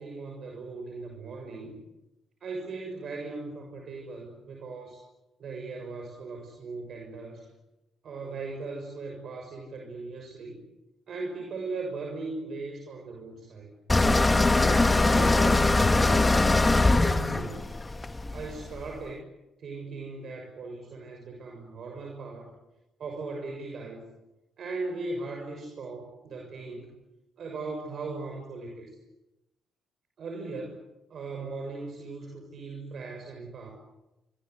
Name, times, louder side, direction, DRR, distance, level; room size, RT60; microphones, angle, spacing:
voice 1, 0.0-1.8 2.4-5.0 5.4-7.4 8.0-10.6 11.1-13.7 14.5-17.6 18.3-19.2 19.6-22.4 23.0-24.1 24.6-26.9 27.4-28.9 30.2-30.8 31.1-33.7, right 3 dB, 60° right, 2 dB, 6.7 m, -38 dB
sound 1, 13.9-18.8, left 2 dB, 20° left, 1.7 m, -22 dB
29.0 x 25.0 x 8.2 m, 0.99 s
cardioid pair, 90°, 0 cm